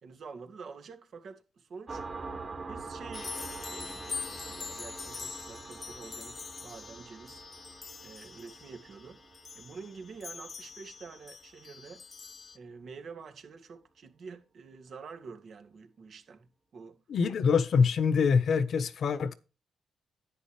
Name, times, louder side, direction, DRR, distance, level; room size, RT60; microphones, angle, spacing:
voice 1, 0.0-2.0 2.7-7.4 8.0-9.2 9.5-12.0 12.5-17.0, right 5 dB, 60° right, 2.4 m, -48 dB
sound 1, 1.9-11.1, right 4 dB, 40° right, 2.4 m, -45 dB
sound 2, 3.1-12.6, left 5 dB, 45° left, 0.7 m, -44 dB
voice 2, 17.1-19.3, left 5 dB, 65° left, 1.2 m, -25 dB
10.5 x 9.2 x 3.4 m
cardioid pair, 75°, 0 cm